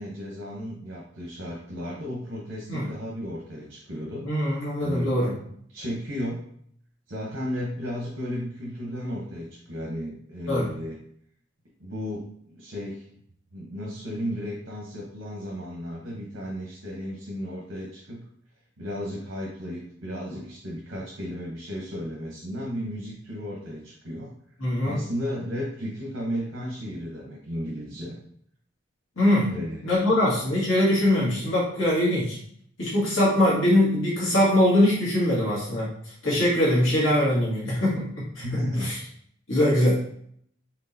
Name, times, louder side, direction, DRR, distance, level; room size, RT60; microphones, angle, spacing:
voice 1, 0.0-4.3 4.8-5.1 5.7-6.5 7.1-11.0 11.8-13.0 13.5-18.3 18.8-24.3 24.8-28.2 29.5-29.8 38.4-39.0, equal, 65° right, -3 dB, 1.0 m, -34 dB
voice 2, 4.2-5.3 10.5-10.7 20.3-20.4 24.6-25.0 29.2-29.5 29.8-32.4 32.8-35.9 36.2-38.4 38.8-39.0 39.5-40.0, left 1 dB, 80° left, -6 dB, 1.8 m, -22 dB
4.5 x 3.7 x 2.8 m, 0.65 s
head